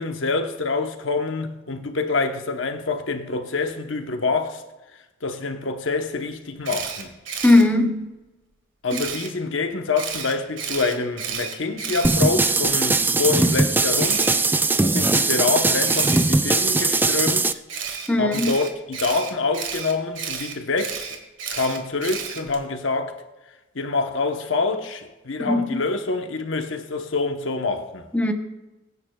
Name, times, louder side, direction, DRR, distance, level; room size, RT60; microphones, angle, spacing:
voice 1, 0.0-4.6 5.2-7.1 8.8-14.3 14.8-17.6 18.2-21.2 21.5-23.2 23.7-28.1, left 3 dB, 75° left, 1.0 m, -26 dB
Camera, 6.6-7.6 8.9-9.3 10.0-12.7 14.0-14.4 15.8-16.2 17.7-22.6, right 7 dB, 70° right, 1.7 m, -32 dB
voice 2, 7.4-8.1 18.1-18.5 25.5-25.8 28.1-28.3, left 2 dB, 5° left, 0.9 m, -18 dB
sound 1, 12.0-17.5, right 3 dB, 10° right, 0.3 m, -20 dB
23.0 x 9.5 x 2.4 m
head